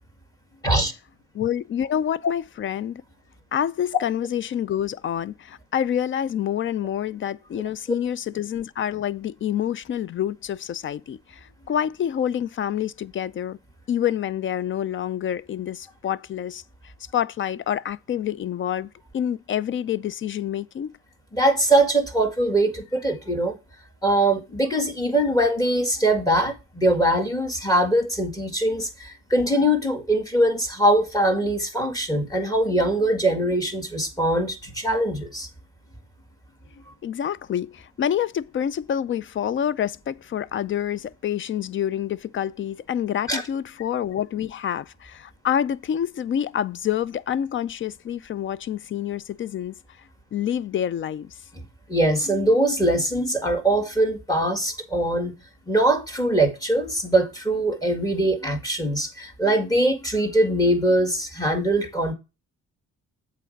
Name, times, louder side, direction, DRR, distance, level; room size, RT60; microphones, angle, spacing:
voice 1, 1.3-3.0 3.5-13.6 13.9-20.9 37.0-49.8 50.3-51.3, left 9 dB, 40° left, 0.5 m, -27 dB
voice 2, 21.3-23.6 24.0-35.5 43.3-43.4 51.9-55.3 55.7-62.1, right 1 dB, 10° left, 1.9 m, -22 dB
7.6 x 4.1 x 6.4 m
cardioid pair, 90°, 30 cm